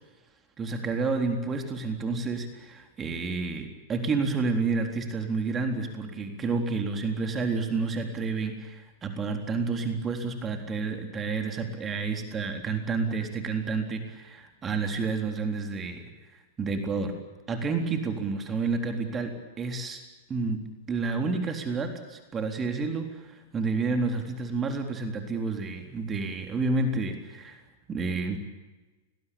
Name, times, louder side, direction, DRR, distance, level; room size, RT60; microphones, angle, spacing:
voice 1, 0.6-16.0 16.6-17.1 17.5-20.0 20.3-20.6 20.9-27.6 27.9-28.4, right 4 dB, 20° right, 4 dB, 3.8 m, -30 dB
29.5 x 20.5 x 8.7 m, 1.2 s
figure-of-eight pair, 95°, 0 cm